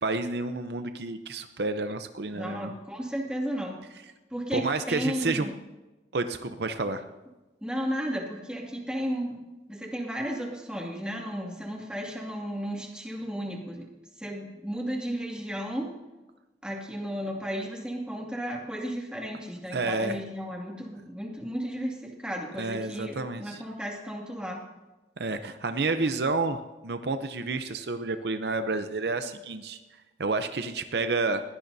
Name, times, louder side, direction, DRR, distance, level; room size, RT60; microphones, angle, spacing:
voice 1, 0.0-2.7 4.5-5.5 6.1-7.0 19.7-20.1 22.6-23.6 25.2-29.8 30.2-31.4, right 3 dB, 70° right, 9 dB, 0.7 m, -30 dB
voice 2, 2.3-3.8 4.3-5.5 7.6-13.9 14.2-15.9 16.6-24.6, equal, 5° right, -1 dB, 2.2 m, -34 dB
20.5 x 17.0 x 2.7 m, 1.1 s
head